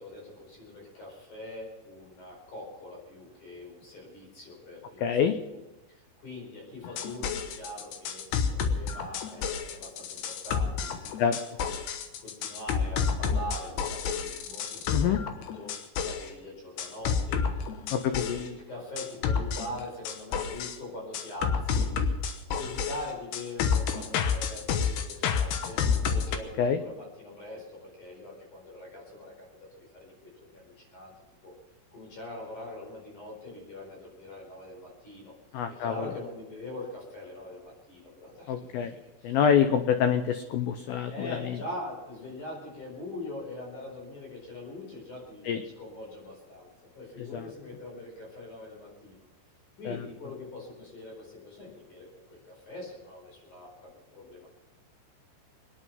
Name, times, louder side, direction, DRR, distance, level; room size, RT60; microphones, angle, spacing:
voice 1, 0.0-5.2 5.5-5.6 5.9-11.8 12.2-17.7 18.1-21.9 22.6-25.8 26.1-31.1 31.4-31.5 31.9-35.3 35.7-39.4 41.1-49.2 49.8-54.5, left 1 dB, 45° left, -1 dB, 5.9 m, -43 dB
voice 2, 5.0-5.4 11.2-11.4 14.9-15.2 17.9-18.4 26.6-26.8 35.5-36.1 38.5-38.9 39.2-41.6 45.5-45.6 47.3-47.4 49.9-50.0, left 8 dB, 90° left, 8 dB, 2.1 m, -26 dB
sound 1, 6.8-16.3 16.8-18.5 19.0-20.8 21.1-26.4, left 6 dB, 70° left, 3.0 m, -29 dB
24.0 x 10.0 x 5.5 m, 1.1 s
omnidirectional pair, 5.3 m